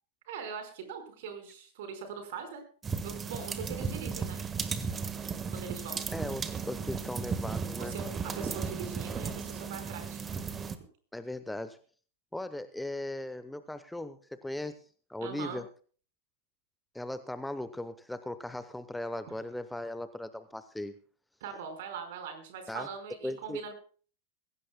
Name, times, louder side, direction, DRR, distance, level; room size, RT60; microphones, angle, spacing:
voice 1, 0.3-2.6 3.0-4.4 5.5-6.0 7.8-10.2 15.2-15.6 21.4-23.7, right 6 dB, 55° right, 7 dB, 4.8 m, -41 dB
sound 1, 2.8-10.8, right 5 dB, 20° right, 1.5 m, -35 dB
voice 2, 6.1-8.0 11.1-11.8 12.3-14.8 15.1-15.6 16.9-20.9 22.7-22.9 23.2-23.6, left 1 dB, 5° left, 12 dB, 0.9 m, -38 dB
21.5 x 16.5 x 2.2 m, 0.41 s
figure-of-eight pair, 90°, 0 cm